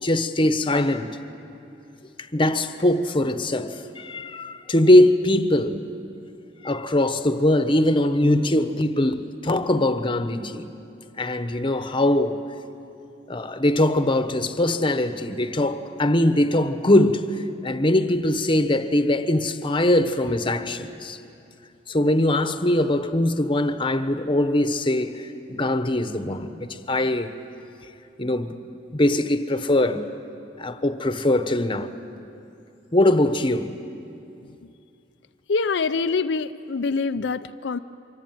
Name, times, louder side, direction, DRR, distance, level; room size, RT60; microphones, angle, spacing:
voice 1, 0.0-1.1 2.3-5.8 6.6-10.7 11.2-12.4 13.3-21.2 21.9-27.3 28.2-28.5 28.9-30.1 30.6-31.9 32.9-33.7, left 1 dB, 30° left, 1.1 m, -21 dB
voice 2, 35.5-37.8, left 4 dB, 85° left, 0.5 m, -25 dB
25.5 x 24.0 x 9.2 m
head